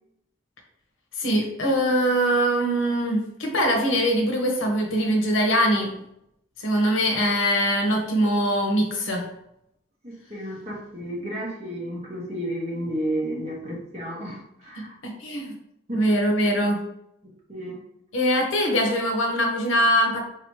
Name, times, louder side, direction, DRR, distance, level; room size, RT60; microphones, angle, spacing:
voice 1, 1.2-5.9 6.6-9.2 14.8-15.5 15.9-16.8 18.1-20.2, equal, 75° left, 2 dB, 0.9 m, -22 dB
voice 2, 10.0-14.9 15.9-16.1 17.5-17.8, right 1 dB, 35° right, -3 dB, 1.1 m, -32 dB
3.9 x 2.9 x 3.1 m, 0.78 s
head